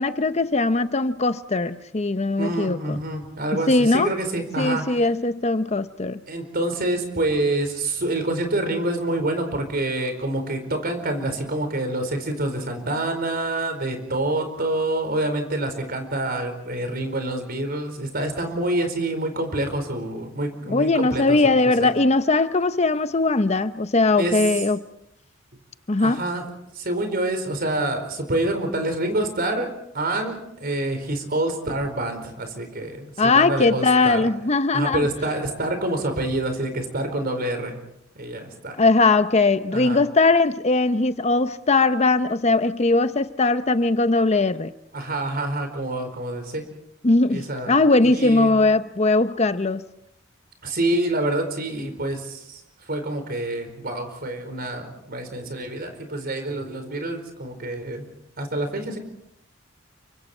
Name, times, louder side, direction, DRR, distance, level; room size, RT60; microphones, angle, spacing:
voice 1, 0.0-3.0 3.7-4.1 4.6-6.2 20.7-24.8 25.9-26.2 33.2-35.1 38.8-44.7 47.0-49.8, left 3 dB, 35° left, 0.8 m, -20 dB
voice 2, 2.4-5.0 6.3-21.9 24.2-24.4 26.0-26.5 26.7-29.7 29.9-34.2 34.7-37.8 38.1-38.8 39.7-40.0 44.9-46.6 47.3-47.8 48.0-48.6 50.6-58.1 58.4-59.0, right 1 dB, 50° right, 4.7 m, -27 dB
29.5 x 24.5 x 4.4 m
head